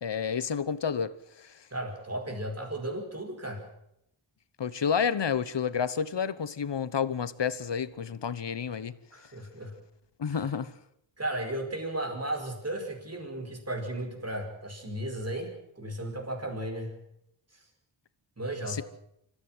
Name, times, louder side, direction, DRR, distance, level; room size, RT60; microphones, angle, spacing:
voice 1, 0.0-1.1 1.4-1.6 4.6-9.0 10.2-10.7 18.7-18.8, left 7 dB, 65° left, 1.1 m, -30 dB
voice 2, 1.7-3.7 9.1-9.7 10.3-10.5 11.2-17.0 17.5-17.6 18.4-18.8, right 1 dB, 30° right, 5.1 m, -35 dB
25.5 x 15.0 x 7.9 m
wide cardioid pair, 100°, 46 cm